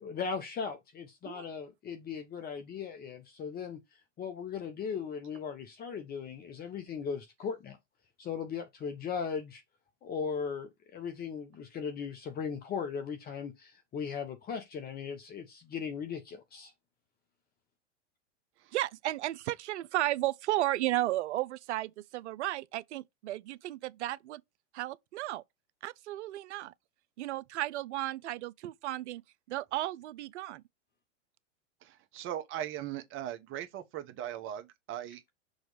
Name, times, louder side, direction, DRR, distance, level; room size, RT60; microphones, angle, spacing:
voice 1, 0.0-7.8 8.2-9.6 10.0-16.7, left 6 dB, 25° left, 0.9 m, -38 dB
voice 2, 18.7-24.4 24.7-25.4 25.8-26.7 27.2-29.2 29.5-30.6, right 15 dB, 70° right, 0.6 m, -34 dB
voice 3, 31.8-35.3, right 11 dB, 35° right, 1.1 m, -39 dB
6.4 x 3.1 x 5.0 m
hypercardioid pair, 110°, 37 cm